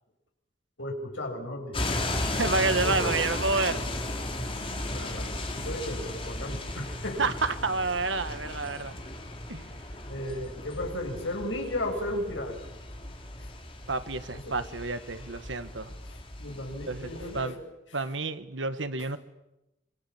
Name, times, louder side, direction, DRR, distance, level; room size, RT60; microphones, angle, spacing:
voice 1, 0.8-1.8 2.8-3.2 4.9-7.2 10.1-12.7 13.4-13.5 14.5-14.6 16.1-17.6, left 1 dB, 80° left, 1 dB, 7.1 m, -35 dB
sound 1, 1.7-17.5, left 2 dB, 30° left, 3.3 m, -35 dB
voice 2, 2.3-3.8 7.2-8.9 9.5-9.7 13.9-15.9 16.9-17.5 17.9-19.2, right 3 dB, 85° right, 11 dB, 1.6 m, -29 dB
25.5 x 25.5 x 7.3 m, 0.92 s
head